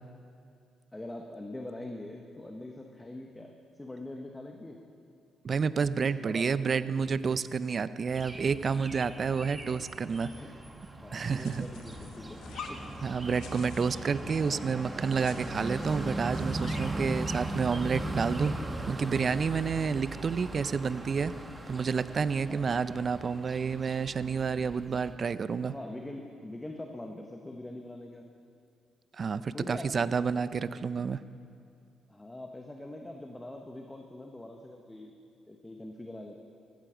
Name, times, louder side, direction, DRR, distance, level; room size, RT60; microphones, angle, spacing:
voice 1, 0.9-4.8 6.0-6.5 9.4-9.8 10.3-10.5 11.0-12.4 12.7-12.8 22.5-22.7 25.6-28.3 29.5-30.1 32.1-35.1 35.5-36.4, left 1 dB, 15° left, 3 dB, 1.0 m, -43 dB
voice 2, 5.4-10.3 11.1-11.7 13.0-18.5 18.8-21.3 21.7-25.7 29.2-31.2, right 5 dB, 45° right, 15 dB, 0.5 m, -29 dB
sound 1, 8.1-25.1, right 1 dB, 15° right, 1.2 m, -39 dB
sound 2, 11.2-17.0, left 6 dB, 80° left, 1.0 m, -48 dB
15.0 x 14.5 x 5.0 m, 2.4 s
cardioid pair, 90°, 0 cm